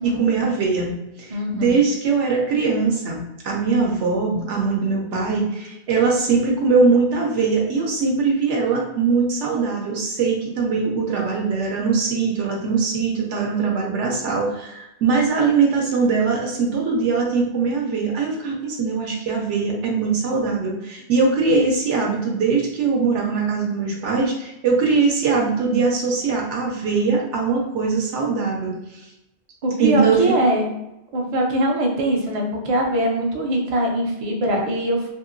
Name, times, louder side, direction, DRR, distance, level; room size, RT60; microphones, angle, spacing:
voice 1, 0.0-29.1 29.8-30.3, right 4 dB, 80° right, -1 dB, 0.9 m, -21 dB
voice 2, 1.3-1.7 29.6-30.7 31.1-35.0, right 1 dB, 50° right, 0 dB, 0.4 m, -22 dB
2.8 x 2.6 x 2.5 m, 0.92 s
omnidirectional pair, 1.2 m